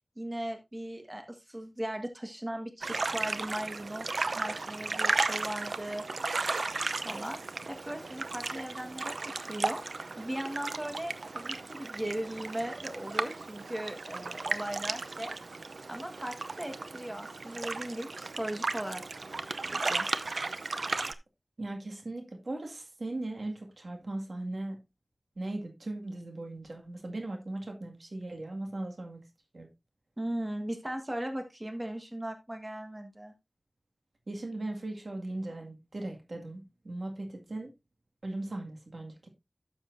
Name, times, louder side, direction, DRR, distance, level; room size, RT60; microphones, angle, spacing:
voice 1, 0.2-4.0 4.3-6.0 7.0-7.4 7.7-9.8 10.2-15.3 15.9-19.0 19.6-20.1 30.2-33.3, right 1 dB, 25° right, 1.6 m, -38 dB
sound 1, 2.8-21.1, right 3 dB, 90° right, 0.6 m, -35 dB
voice 2, 21.6-24.8 25.4-29.2 29.5-29.7 34.3-37.7 38.2-39.3, right 2 dB, 70° right, 2.0 m, -38 dB
12.0 x 7.2 x 2.6 m
wide cardioid pair, 70°, 0 cm